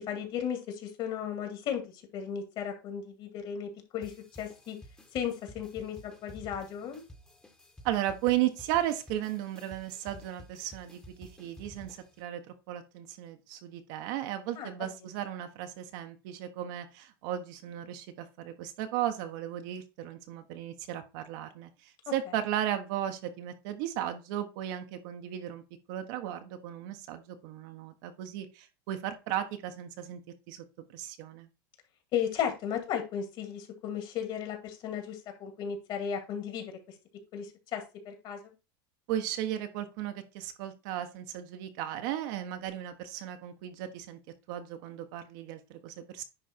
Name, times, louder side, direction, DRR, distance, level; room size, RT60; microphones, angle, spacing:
voice 1, 0.0-4.8 5.1-7.0 14.6-14.9 32.1-36.8 37.3-38.5, left 8 dB, 45° left, 5 dB, 2.2 m, -35 dB
sound 1, 4.0-12.2, equal, 5° left, 1.3 m, -52 dB
voice 2, 7.8-25.6 25.9-30.2 30.5-30.6 30.9-31.5 39.1-44.2 44.5-46.2, right 12 dB, 60° right, 7 dB, 1.2 m, -35 dB
10.0 x 3.4 x 4.4 m, 0.29 s
supercardioid pair, 140°, 12 cm